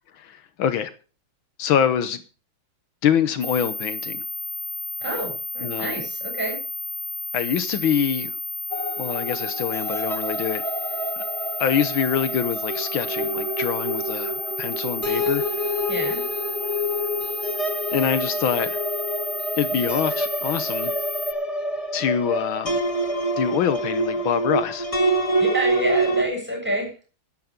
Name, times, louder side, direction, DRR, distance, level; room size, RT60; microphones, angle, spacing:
voice 1, 0.1-0.9 1.6-2.2 3.0-4.2 5.6-6.0 7.3-8.4 9.0-10.6 11.2-11.3 11.6-15.7 17.9-18.8 19.6-20.9 21.9-22.8 23.4-24.9, left 9 dB, 80° left, 1.7 m, -25 dB
sound 1, 3.4-21.3, left 2 dB, 25° right, 1.8 m, -32 dB
voice 2, 5.0-6.6 15.9-16.2 25.4-26.9, right 1 dB, 5° right, 7.5 m, -28 dB
sound 2, 8.7-26.2, right 1 dB, 20° left, 1.4 m, -27 dB
13.5 x 10.5 x 5.1 m
omnidirectional pair, 2.2 m